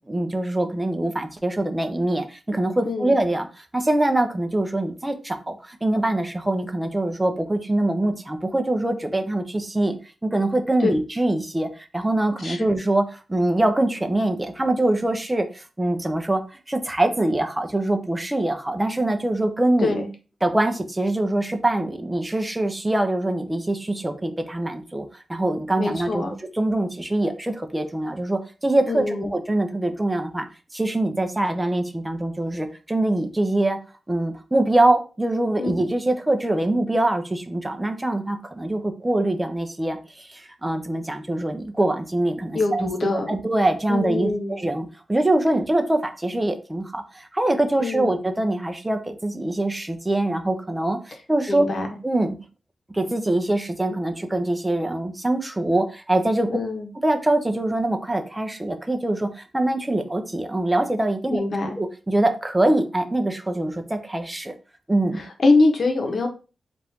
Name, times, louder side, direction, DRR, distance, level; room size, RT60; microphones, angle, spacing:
voice 1, 0.1-10.0 10.2-20.0 20.4-26.2 26.5-30.5 30.7-33.8 34.1-51.7 52.0-52.4 52.9-56.5 57.0-61.4 61.8-64.5 64.9-65.2, right 1 dB, 15° right, 6 dB, 0.7 m, -24 dB
voice 2, 2.8-3.2 10.8-10.9 12.4-12.6 19.8-20.1 25.8-26.3 28.9-29.3 35.6-35.7 42.5-43.3 43.9-44.6 47.8-48.1 51.5-51.9 56.5-56.9 61.3-61.8 65.2-66.3, left 3 dB, 50° left, 4 dB, 1.0 m, -23 dB
4.2 x 2.6 x 3.5 m, 0.33 s
cardioid pair, 85°, 0 cm